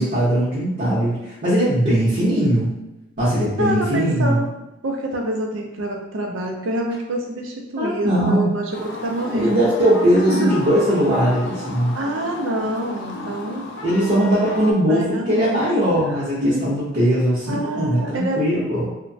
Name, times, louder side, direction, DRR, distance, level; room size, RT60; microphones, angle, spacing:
voice 1, 0.0-2.7 3.2-4.4 7.8-8.5 9.3-11.9 13.8-18.9, equal, 45° right, -9 dB, 0.8 m, -20 dB
voice 2, 3.6-4.5 4.8-9.6 10.3-10.5 11.9-13.7 14.9-16.0 16.4-16.6 17.5-18.4, right 1 dB, 75° right, 2 dB, 0.5 m, -26 dB
sound 1, 8.7-14.7, left 1 dB, 60° left, 0.5 m, -33 dB
3.0 x 2.1 x 2.6 m, 0.95 s
head